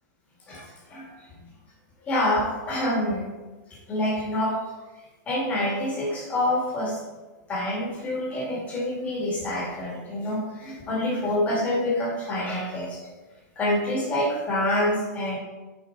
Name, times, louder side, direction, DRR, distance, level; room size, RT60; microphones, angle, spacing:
voice 1, 0.5-1.1 2.0-3.3 3.9-4.6 5.3-7.0 7.5-13.0 13.6-15.4, left 1 dB, 15° left, -5 dB, 2.1 m, -26 dB
8.6 x 5.2 x 3.9 m, 1.2 s
supercardioid pair, 175°, 10 cm